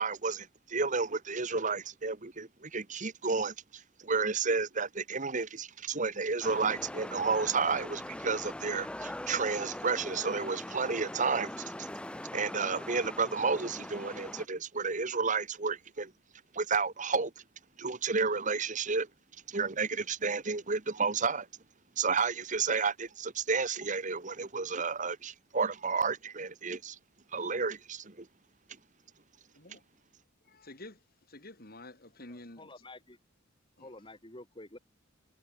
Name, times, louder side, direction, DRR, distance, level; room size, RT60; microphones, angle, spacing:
voice 1, 0.0-11.9 12.3-16.1 16.5-17.3 17.8-19.1 19.5-21.5 22.0-27.0 27.3-28.3, right 4 dB, 40° right, 1.5 m, -31 dB
sound 1, 6.4-14.5, left 1 dB, 5° left, 0.5 m, -41 dB
voice 2, 30.4-32.8 33.8-34.2, left 2 dB, 50° left, 4.9 m, -50 dB
voice 3, 32.3-33.2 33.8-34.8, left 2 dB, 25° left, 7.0 m, -49 dB
head